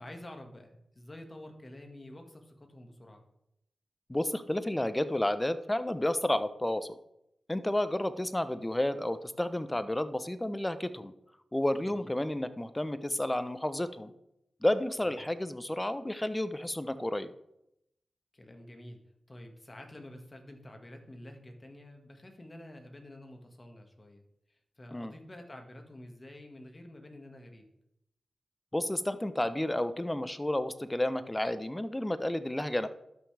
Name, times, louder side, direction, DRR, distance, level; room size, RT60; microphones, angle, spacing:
voice 1, 0.0-3.2 11.8-12.1 15.0-15.2 18.3-19.0 19.3-24.2 24.5-27.6, left 1 dB, 35° left, 4 dB, 1.7 m, -49 dB
voice 2, 4.1-6.9 7.5-11.1 11.5-14.1 14.6-17.3 24.9-25.1 28.7-32.9, left 1 dB, 15° left, 12 dB, 0.7 m, -31 dB
12.5 x 5.8 x 3.3 m, 0.82 s
cardioid pair, 40°, 0 cm